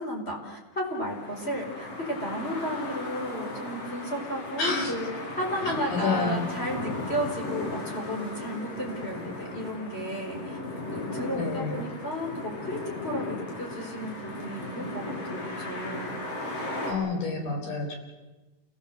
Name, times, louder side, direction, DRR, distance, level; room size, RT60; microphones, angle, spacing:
voice 1, 0.0-5.1 5.4-10.6 10.9-16.2, equal, 20° left, 0 dB, 4.6 m, -33 dB
sound 1, 0.8-16.9, left 2 dB, 50° left, 6.4 m, -36 dB
voice 2, 4.6-4.9 5.7-6.5 11.3-11.8 16.8-18.0, left 3 dB, 75° left, 3 dB, 5.5 m, -29 dB
28.5 x 18.0 x 7.9 m, 1.2 s
omnidirectional pair, 3.6 m